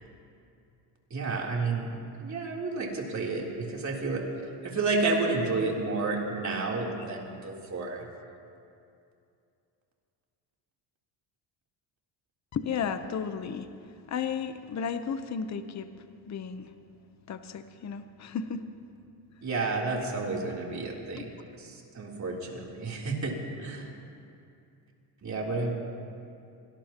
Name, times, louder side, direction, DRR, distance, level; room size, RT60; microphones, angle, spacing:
voice 1, 1.1-1.9 2.2-4.2 4.6-8.1 19.4-21.3 21.6-23.9 25.2-25.7, right 3 dB, 35° right, -2 dB, 3.5 m, -31 dB
voice 2, 5.4-6.0 7.0-7.1 12.5-13.7 14.1-15.9 16.2-16.7 17.3-18.7 21.2-21.3, left 6 dB, 35° left, 9 dB, 0.9 m, -34 dB
25.0 x 19.0 x 3.0 m, 2.5 s
cardioid pair, 105°, 46 cm